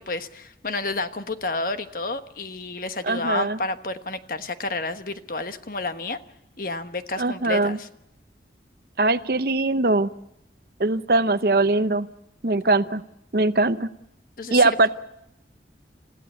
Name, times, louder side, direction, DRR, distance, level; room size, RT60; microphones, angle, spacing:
voice 1, 0.0-6.2 6.6-7.9 14.4-14.9, left 2 dB, 50° left, 9 dB, 1.2 m, -30 dB
voice 2, 3.0-3.6 7.2-7.8 9.0-10.1 10.8-12.1 12.4-13.0 13.3-13.9 14.5-14.9, right 2 dB, 55° right, 12 dB, 0.8 m, -21 dB
30.0 x 15.0 x 8.4 m, 0.84 s
head